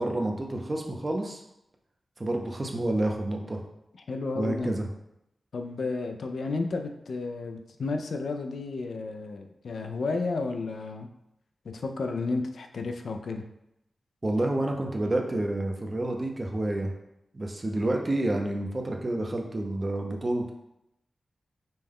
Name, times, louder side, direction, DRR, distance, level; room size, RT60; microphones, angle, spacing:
voice 1, 0.0-1.4 2.2-3.6 4.4-4.9 14.2-16.9 17.3-20.5, right 1 dB, 30° right, 1 dB, 0.5 m, -29 dB
voice 2, 4.1-4.7 5.5-11.1 11.6-13.4, left 3 dB, 85° left, 5 dB, 0.4 m, -32 dB
5.3 x 2.2 x 3.5 m, 0.84 s
wide cardioid pair, 145°, 0 cm